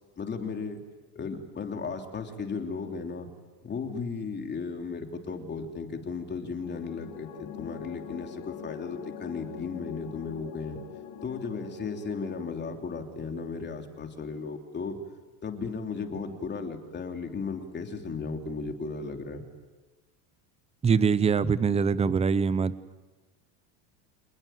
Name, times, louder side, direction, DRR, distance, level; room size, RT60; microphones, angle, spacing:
voice 1, 0.2-0.8 1.1-3.3 3.6-10.8 11.2-15.0 15.4-19.4, left 4 dB, 25° left, 4 dB, 3.3 m, -35 dB
sound 1, 6.6-12.6, left 10 dB, 50° left, 2.7 m, -43 dB
voice 2, 20.8-22.7, right 6 dB, 15° right, 16 dB, 0.8 m, -23 dB
28.0 x 20.5 x 9.3 m, 1.3 s
supercardioid pair, 135°, 44 cm